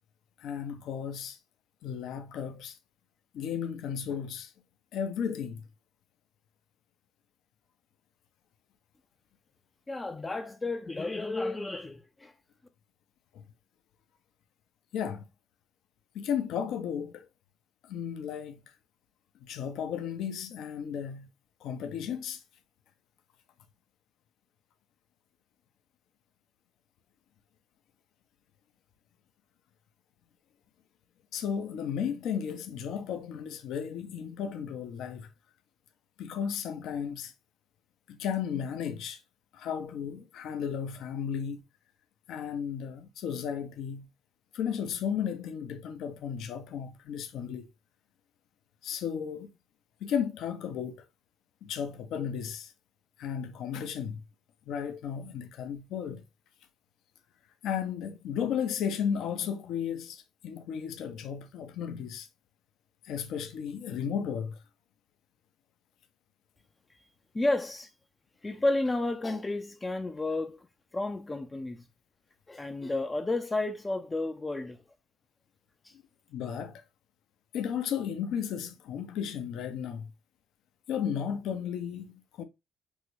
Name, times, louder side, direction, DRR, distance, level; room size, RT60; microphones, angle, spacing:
voice 1, 0.4-1.4 1.8-2.8 3.3-4.5 4.9-5.6 14.9-15.2 16.1-17.3 17.9-18.6 19.4-21.3 21.6-22.4 31.3-35.3 36.2-37.3 38.1-39.2 39.5-41.6 42.3-44.1 44.5-47.7 48.8-49.5 50.0-51.0 51.6-52.7 53.2-54.2 54.7-56.2 57.6-62.3 63.0-64.6 76.3-76.8 77.5-80.1 80.9-82.4, left 8 dB, 70° left, 0.5 m, -34 dB
voice 2, 9.9-12.3 67.3-67.9 68.4-70.7 70.9-71.8 72.5-74.8 75.8-75.9, left 2 dB, 20° left, 0.4 m, -31 dB
3.5 x 2.1 x 3.2 m
supercardioid pair, 70°, 0 cm